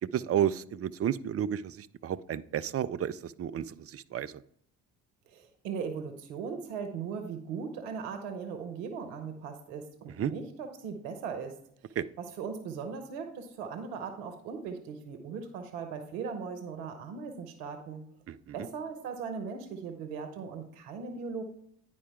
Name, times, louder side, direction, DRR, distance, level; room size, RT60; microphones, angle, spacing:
voice 1, 0.1-4.4 10.2-10.3 12.0-12.1 18.3-18.5, right 9 dB, 30° right, 15 dB, 0.4 m, -32 dB
voice 2, 5.3-11.6 11.9-18.0 18.5-21.4, right 6 dB, 85° right, 7 dB, 0.9 m, -39 dB
9.8 x 4.9 x 3.5 m, 0.67 s
hypercardioid pair, 45°, 48 cm